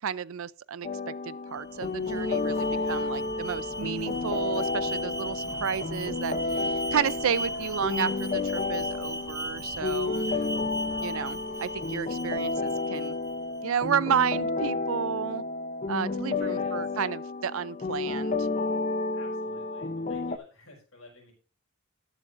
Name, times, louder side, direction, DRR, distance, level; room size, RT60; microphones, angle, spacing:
voice 1, 0.0-6.4 6.9-10.3 11.0-13.1 13.6-15.4 15.9-18.5, right 7 dB, 65° right, 0.5 m, -31 dB
sound 1, 0.8-20.4, left 3 dB, 35° left, 0.7 m, -31 dB
Alarm, 1.6-13.6, right 1 dB, 15° right, 0.9 m, -38 dB
voice 2, 2.6-3.2 9.8-10.6 16.3-17.0 19.1-21.3, left 2 dB, 65° left, 5.3 m, -52 dB
20.0 x 7.1 x 2.6 m
head